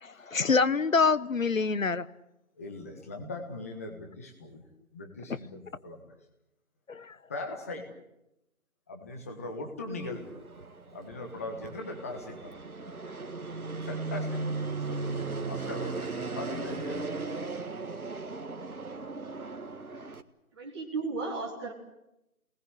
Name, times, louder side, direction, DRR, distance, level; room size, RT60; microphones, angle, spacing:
voice 1, 0.0-2.1 5.3-5.4 6.9-7.2, left 4 dB, 65° left, 16 dB, 1.2 m, -26 dB
voice 2, 2.6-4.6 4.9-6.0 7.3-7.8 8.9-10.3 10.9-12.5 13.8-16.1 16.3-17.1, left 2 dB, 10° left, 3 dB, 1.4 m, -40 dB
Fixed-wing aircraft airplane, 10.0-20.2, right 3 dB, 80° right, 1.8 m, -37 dB
voice 3, 20.5-21.7, right 3 dB, 20° right, -4 dB, 3.1 m, -34 dB
27.5 x 20.0 x 8.1 m, 0.88 s
figure-of-eight pair, 165°, 43 cm